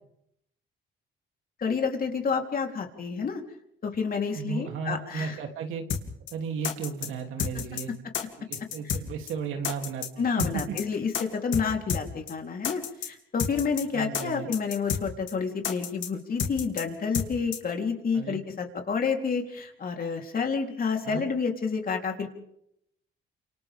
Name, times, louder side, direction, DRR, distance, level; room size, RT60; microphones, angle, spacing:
voice 1, 1.6-3.4 3.8-5.4 7.5-7.6 10.2-22.3, left 5 dB, 45° left, 3 dB, 3.7 m, -29 dB
voice 2, 4.3-5.8 6.3-8.0 8.4-10.7 13.9-14.5 18.1-18.4 21.0-21.3, right 6 dB, 85° right, 4 dB, 3.1 m, -34 dB
sound 1, 5.9-6.0 6.3-6.4 6.6-7.1 7.4-7.8 8.1-8.2 8.5-9.0 9.3-9.4 9.6-10.1 10.4-10.8 11.1-11.2 11.5-11.6 11.9-12.0 12.3-12.4 12.6-13.1 13.4-13.8 14.1-14.2 14.5-15.0 15.3-15.4 15.6-16.1 16.4-16.8 17.1-17.3 17.5-17.6, left 8 dB, 80° left, 2.9 m, -30 dB
30.0 x 26.5 x 3.7 m, 0.76 s
cardioid pair, 90°, 20 cm